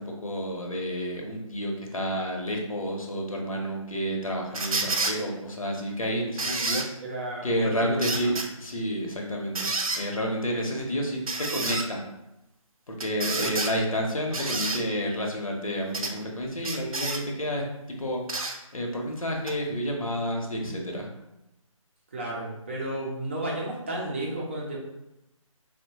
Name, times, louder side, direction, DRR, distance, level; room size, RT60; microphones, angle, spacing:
voice 1, 0.0-6.8 7.4-8.3 8.6-12.0 12.9-18.2 18.7-21.1, equal, 75° left, 0 dB, 0.9 m, -30 dB
sound 1, 4.5-5.2 6.4-6.9 8.0-8.5 9.6-10.0 11.3-11.9 13.0-13.7 14.3-14.8 15.9-16.1 16.6-17.2 18.3-18.6 19.5-19.6, right 3 dB, 85° right, 0.6 m, -29 dB
voice 2, 7.0-8.3 13.4-13.6 22.1-24.8, right 1 dB, 20° right, -4 dB, 0.5 m, -33 dB
4.2 x 2.1 x 2.8 m, 0.91 s
figure-of-eight pair, 150°, 17 cm